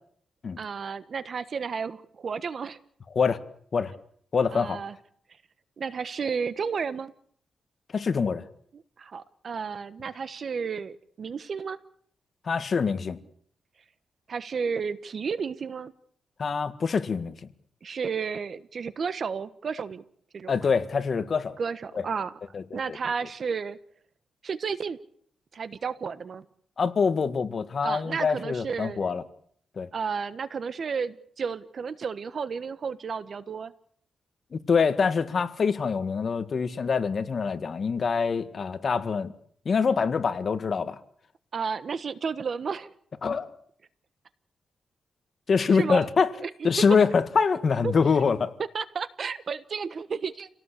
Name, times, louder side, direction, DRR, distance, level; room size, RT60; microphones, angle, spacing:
voice 1, 0.6-2.8 4.5-4.9 5.8-7.1 8.7-11.8 14.3-15.9 17.8-20.0 20.3-20.7 21.6-22.3 22.7-23.8 24.4-25.0 25.5-26.4 27.8-29.1 29.9-33.7 41.5-42.9 45.7-46.1 46.4-46.5 47.8-48.2 48.7-50.5, right 5 dB, 50° right, 15 dB, 1.3 m, -32 dB
voice 2, 4.3-4.8 7.9-8.4 12.5-13.2 16.4-17.3 20.5-21.5 22.0-22.1 22.5-23.0 26.8-29.2 29.8-29.9 34.5-39.3 39.7-41.0 43.2-43.5 45.5-46.3 46.6-48.5, left 5 dB, 50° left, 11 dB, 1.8 m, -25 dB
28.5 x 18.0 x 8.4 m, 0.64 s
cardioid pair, 110°, 0 cm